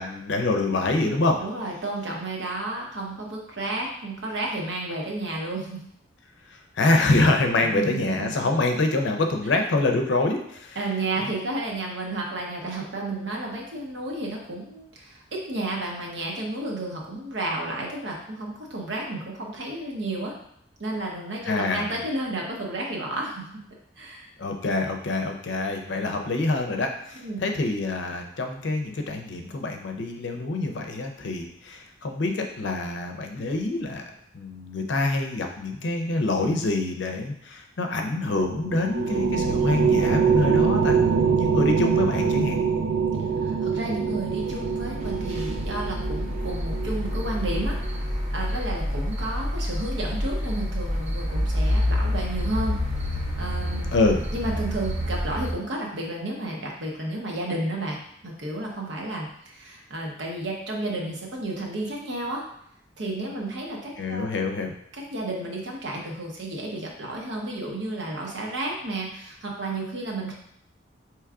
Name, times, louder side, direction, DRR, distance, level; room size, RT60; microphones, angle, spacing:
voice 1, 0.0-1.4 6.8-10.8 11.2-11.3 21.5-22.0 24.4-34.0 34.3-42.6 53.9-54.2 64.0-64.7, left 2 dB, 70° left, 4 dB, 0.5 m, -26 dB
voice 2, 1.4-5.8 7.6-8.3 10.7-20.4 20.8-23.5 24.0-24.3 27.2-27.4 41.5-41.8 43.4-53.9 54.3-58.0 58.2-62.4 63.0-64.3 65.1-70.3, right 2 dB, 70° right, -1 dB, 0.9 m, -32 dB
sound 1, 38.4-48.1, right 6 dB, 90° right, 0.4 m, -24 dB
sound 2, 44.2-55.5, left 1 dB, 35° right, 0.6 m, -28 dB
4.6 x 3.0 x 2.4 m, 0.73 s
head